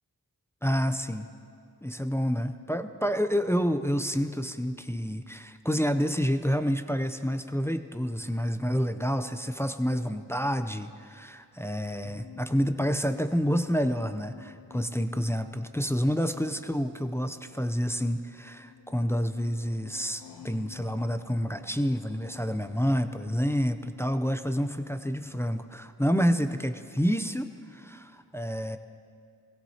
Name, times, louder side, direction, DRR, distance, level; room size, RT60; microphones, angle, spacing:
voice 1, 0.6-1.3 1.8-28.8, equal, 5° left, 9 dB, 0.5 m, -28 dB
sound 1, 12.0-24.8, left 9 dB, 70° left, 0.7 m, -52 dB
17.5 x 16.0 x 2.8 m, 2.4 s
cardioid pair, 40°, 39 cm